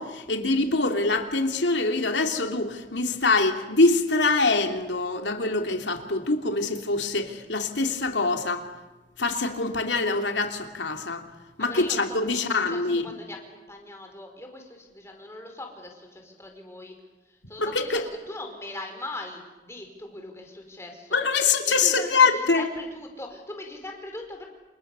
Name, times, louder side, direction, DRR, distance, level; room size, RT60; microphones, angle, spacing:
voice 1, 0.0-8.7 9.2-11.3 11.6-13.1 17.6-18.0 21.1-22.7, left 3 dB, 90° left, 5 dB, 2.9 m, -24 dB
voice 2, 11.6-16.9 17.3-21.2 21.7-24.5, left 2 dB, 15° left, 3 dB, 4.9 m, -40 dB
28.5 x 27.5 x 6.9 m, 1.1 s
head